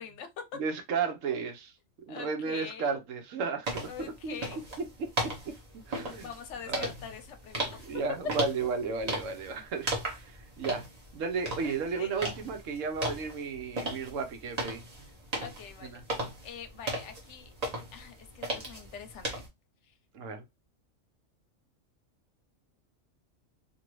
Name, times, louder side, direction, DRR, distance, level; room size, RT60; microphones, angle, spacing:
voice 1, 0.0-0.4 2.1-3.0 3.9-4.6 5.9-8.0 11.6-12.2 15.4-17.5 17.9-19.4 19.8-19.9, left 7 dB, 70° left, 0.9 m, -45 dB
voice 2, 0.6-1.7 2.1-4.4 4.8-5.6 5.9-6.3 6.7-6.9 7.9-10.9 11.1-14.8 15.8-16.0 20.1-20.4, right 5 dB, 75° right, 1.1 m, -34 dB
sound 1, 3.7-19.5, right 1 dB, 35° right, 1.0 m, -37 dB
2.7 x 2.6 x 3.0 m
omnidirectional pair, 1.3 m